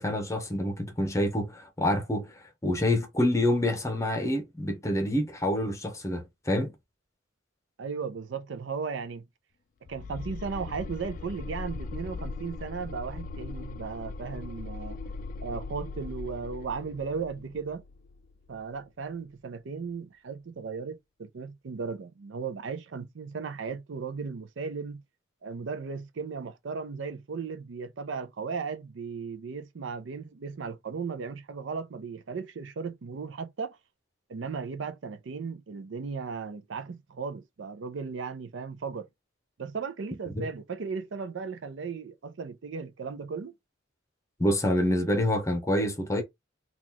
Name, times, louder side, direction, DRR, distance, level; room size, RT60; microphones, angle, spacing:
voice 1, 0.0-2.3 2.6-6.7 40.3-40.5 44.4-46.2, left 1 dB, 15° left, 0.9 m, -27 dB
voice 2, 7.8-9.3 9.9-15.1 15.4-17.8 18.5-25.0 25.4-33.8 34.3-39.1 39.6-43.5, right 5 dB, 70° right, 0.5 m, -36 dB
sound 1, 9.9-18.8, left 3 dB, 45° left, 0.3 m, -39 dB
2.9 x 2.4 x 3.8 m
head